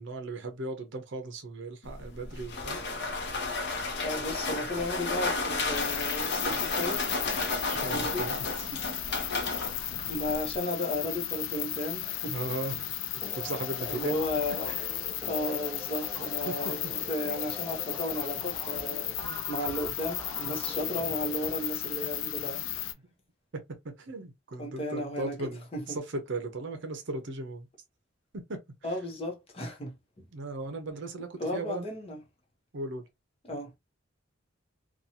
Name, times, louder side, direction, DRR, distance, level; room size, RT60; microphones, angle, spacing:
voice 1, 0.0-2.8 7.6-8.4 8.7-8.9 12.3-12.8 13.3-14.2 14.7-14.8 16.5-16.6 19.2-19.4 20.4-20.5 22.4-22.7 23.5-27.7 28.3-28.6 30.3-31.8 32.7-33.0, right 2 dB, 65° right, 0.7 m, -37 dB
sound 1, 1.8-10.6, left 3 dB, 60° left, 0.8 m, -33 dB
voice 2, 4.0-7.1 7.9-8.3 10.1-12.4 13.8-14.7 15.3-22.6 24.6-26.0 28.8-29.9 31.4-32.2 33.4-33.7, left 1 dB, 30° left, 0.8 m, -34 dB
sound 2, 5.7-22.9, left 12 dB, 85° left, 0.4 m, -35 dB
sound 3, 13.2-22.4, left 1 dB, 10° left, 0.5 m, -45 dB
2.9 x 2.3 x 2.6 m
head